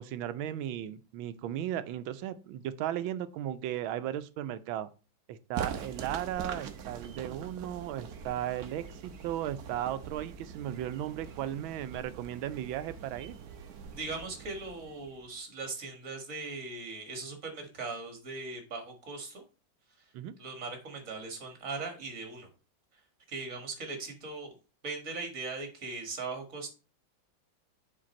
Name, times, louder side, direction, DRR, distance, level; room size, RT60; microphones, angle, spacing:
voice 1, 0.0-4.9 5.3-13.4 20.1-20.3, right 11 dB, 85° right, 1.4 m, -36 dB
sound 1, 5.5-15.4, right 7 dB, 60° right, 1.2 m, -43 dB
voice 2, 13.9-19.4 20.0-20.1 20.4-22.5 22.9-23.0 23.3-24.5 24.8-26.7, right 3 dB, 45° right, 1.9 m, -39 dB
7.5 x 4.6 x 4.2 m
omnidirectional pair, 2.2 m